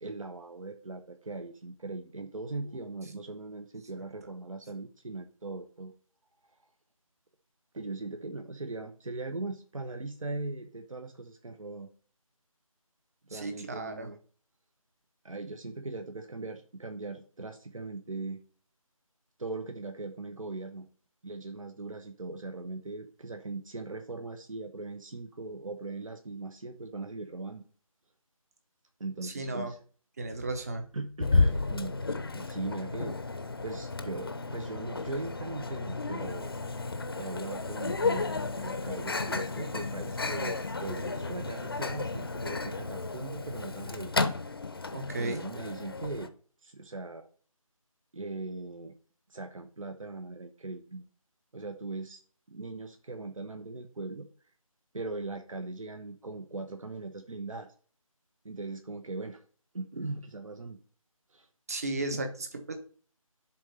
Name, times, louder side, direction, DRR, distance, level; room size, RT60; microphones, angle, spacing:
voice 1, 0.0-5.9 7.7-11.9 13.3-14.2 15.2-18.4 19.4-20.9 21.2-27.6 29.0-29.8 30.9-32.0 32.3-33.2 33.6-36.5 37.2-44.2 45.2-46.3 46.6-47.3 48.1-48.9 49.3-51.0 51.5-52.2 52.5-54.3 54.9-57.7 58.4-59.4 59.7-60.8 61.3-61.5, right 3 dB, 65° right, 6 dB, 1.0 m, -39 dB
voice 2, 13.3-14.1 29.2-29.7 30.2-30.9 44.9-45.4 61.7-62.7, right 2 dB, 25° right, 7 dB, 0.9 m, -34 dB
Microwave oven, 31.2-46.3, left 3 dB, 40° left, 0.7 m, -32 dB
7.3 x 3.7 x 6.6 m, 0.42 s
figure-of-eight pair, 165°, 18 cm